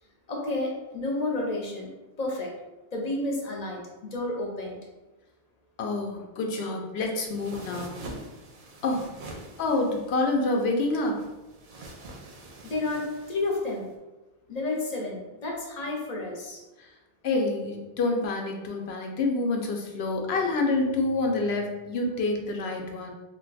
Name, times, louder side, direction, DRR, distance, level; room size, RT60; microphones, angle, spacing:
voice 1, 0.3-1.9 2.2-2.5 2.9-4.8 12.6-13.9 14.5-16.6, left 2 dB, 45° left, 0 dB, 0.7 m, -31 dB
voice 2, 5.8-8.0 8.8-9.1 9.6-11.2 16.8-16.9 17.2-23.1, left 2 dB, 75° left, 2 dB, 0.8 m, -27 dB
sound 1, 7.3-13.9, right 2 dB, 60° right, 0.6 m, -45 dB
2.5 x 2.2 x 3.9 m, 1.1 s
omnidirectional pair, 1.1 m